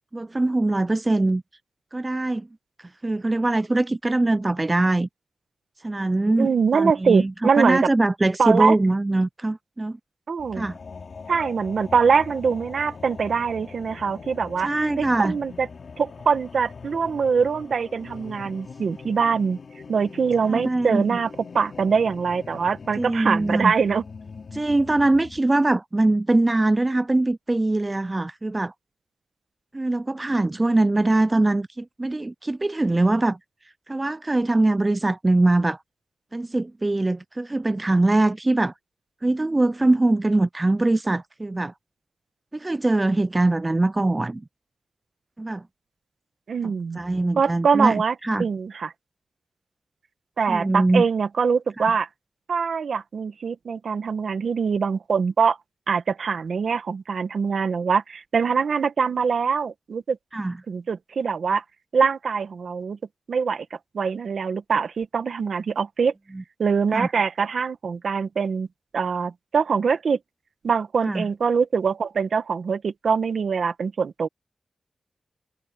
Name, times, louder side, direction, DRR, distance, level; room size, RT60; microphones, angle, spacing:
voice 1, 0.1-1.4 1.9-2.5 3.0-5.1 5.8-10.0 10.6-10.8 14.6-15.4 20.5-21.1 23.0-23.7 24.5-28.7 29.7-33.4 33.9-35.8 36.3-38.7 39.2-41.7 42.5-44.4 45.4-45.6 46.6-48.5 50.5-51.0 51.8-51.9 60.3-60.6 66.3-66.4 66.9-67.1 71.0-71.3, right 2 dB, 25° right, 0.3 m, -22 dB
voice 2, 6.4-7.9 8.4-8.8 10.3-10.7 11.3-14.7 15.0-15.7 16.0-19.6 19.9-24.0 46.5-47.0 47.4-48.9 50.4-52.1 52.5-55.6 55.9-60.2 60.7-61.6 61.9-63.0 63.3-63.6 63.9-66.1 66.6-68.7 68.9-70.2 70.6-74.3, right 5 dB, 80° right, 1.4 m, -23 dB
sound 1, 10.4-25.4, left 5 dB, 65° left, 3.3 m, -42 dB
cardioid pair, 65°, 0 cm